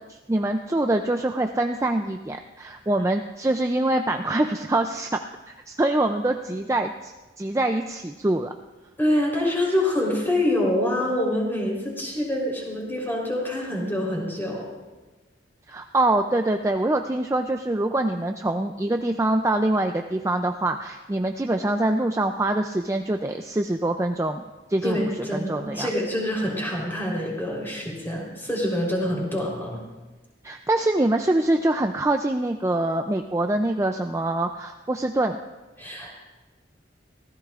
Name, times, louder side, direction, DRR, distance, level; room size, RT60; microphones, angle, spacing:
voice 1, 0.1-5.2 5.5-8.5 15.7-24.4 24.7-25.0 25.3-25.9 30.4-35.4, right 2 dB, 15° right, 5 dB, 0.4 m, -24 dB
voice 2, 9.0-14.6 24.8-29.8 35.8-36.1, left 1 dB, 10° left, -3 dB, 3.7 m, -26 dB
24.5 x 16.0 x 2.5 m, 1.2 s
head